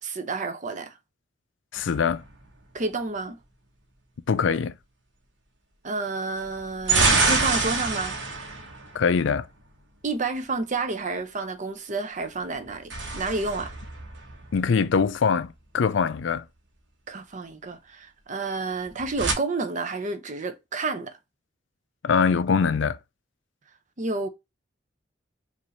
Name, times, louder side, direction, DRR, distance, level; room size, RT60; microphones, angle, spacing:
voice 1, 0.0-1.0 2.7-3.4 5.8-8.2 10.0-13.7 17.1-21.2 24.0-24.3, right 3 dB, 40° right, 0.7 m, -30 dB
voice 2, 1.7-2.2 4.3-4.7 8.9-9.5 14.5-16.4 22.0-23.0, left 5 dB, 80° left, 0.4 m, -23 dB
sound 1, 1.7-2.8 6.4-9.7 12.5-15.0 18.8-19.3, right 3 dB, 70° right, 1.3 m, -27 dB
5.1 x 2.6 x 3.2 m
head